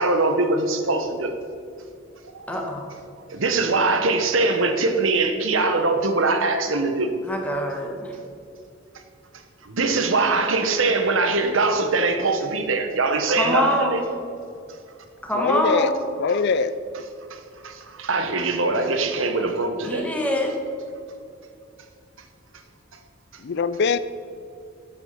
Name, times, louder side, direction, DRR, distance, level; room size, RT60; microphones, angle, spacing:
voice 1, 0.0-1.3 2.3-2.6 3.3-7.1 9.6-14.0 17.3-20.1, right 3 dB, 70° right, 7 dB, 1.1 m, -22 dB
voice 2, 2.5-2.9 7.2-8.1 13.4-14.1 15.2-16.0 19.8-20.5, equal, 5° left, 0 dB, 1.6 m, -24 dB
voice 3, 15.3-15.9 16.2-16.7 23.4-24.0, left 5 dB, 60° left, 14 dB, 0.4 m, -22 dB
11.5 x 8.2 x 5.8 m, 2.5 s
head